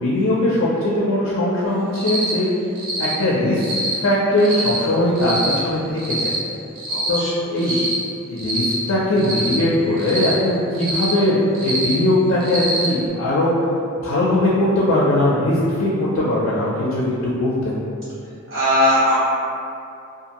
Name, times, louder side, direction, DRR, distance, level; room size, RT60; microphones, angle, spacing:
voice 1, 0.0-2.5 3.0-3.6 4.0-5.4 5.6-6.3 7.1-7.2 7.5-7.7 8.3-13.5 14.0-17.8, left 1 dB, 85° left, -6 dB, 0.4 m, -20 dB
Cricket, 1.9-2.3 2.8-3.1 3.6-3.9 4.4-4.8 5.2-5.5 6.0-6.4 6.8-7.2 7.6-8.0 8.4-8.7 9.2-9.6 10.0-10.3 10.7-11.1 11.5-11.9 12.4-12.9, right 2 dB, 45° right, 0.5 m, -25 dB
voice 2, 6.9-7.3 7.7-7.8 18.5-19.2, left 1 dB, 75° right, -13 dB, 1.3 m, -19 dB
2.5 x 2.4 x 2.9 m, 2.6 s
head